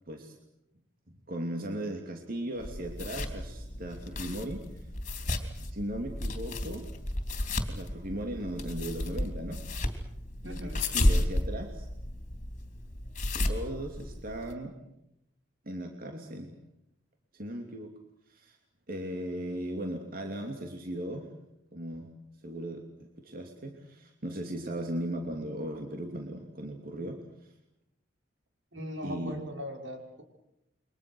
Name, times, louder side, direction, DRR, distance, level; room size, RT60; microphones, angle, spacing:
voice 1, 1.1-4.9 5.6-6.8 7.7-9.7 10.4-11.9 13.5-14.8 15.6-16.5 17.3-17.9 18.3-18.6 18.9-21.3 21.7-22.1 22.4-27.5 29.0-29.4, right 1 dB, 50° right, 3 dB, 2.8 m, -37 dB
sound 1, 2.6-14.5, left 1 dB, 40° left, 3.4 m, -33 dB
voice 2, 10.4-10.8 28.7-30.2, equal, 80° right, 3 dB, 6.0 m, -39 dB
29.0 x 24.0 x 6.3 m, 0.83 s
head